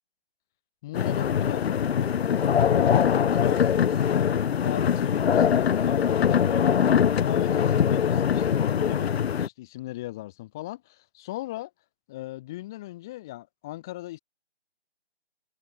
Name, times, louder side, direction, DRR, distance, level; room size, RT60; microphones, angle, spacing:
voice 1, 0.8-2.1 2.5-6.8 7.2-11.7 12.1-14.2, left 17 dB, 5° left, 0.6 m, -38 dB
sound 1, 0.9-9.5, left 8 dB, 65° left, 0.5 m, -22 dB
figure-of-eight pair, 155°, 33 cm